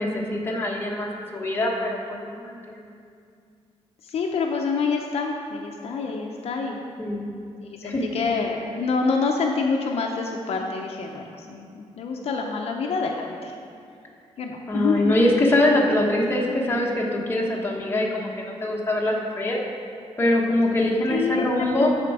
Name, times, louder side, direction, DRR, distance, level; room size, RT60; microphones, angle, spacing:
voice 1, 0.0-2.8 7.0-7.3 7.8-8.0 14.7-19.6 20.2-21.9, left 1 dB, 20° left, -2 dB, 1.0 m, -23 dB
voice 2, 4.1-6.8 7.8-13.5 14.4-15.1 21.1-21.9, left 4 dB, 60° left, 1 dB, 0.6 m, -27 dB
12.5 x 4.4 x 4.8 m, 2.4 s
wide cardioid pair, 165°, 12 cm